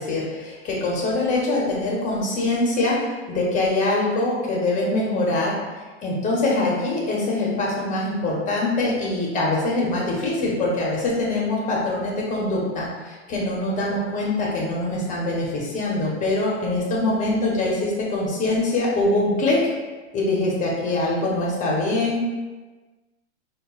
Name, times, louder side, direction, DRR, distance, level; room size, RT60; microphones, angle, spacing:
voice 1, 0.0-5.6 6.0-19.6 20.1-22.2, left 2 dB, 20° left, -4 dB, 0.7 m, -23 dB
5.0 x 2.2 x 2.4 m, 1.3 s
hypercardioid pair, 125°, 35 cm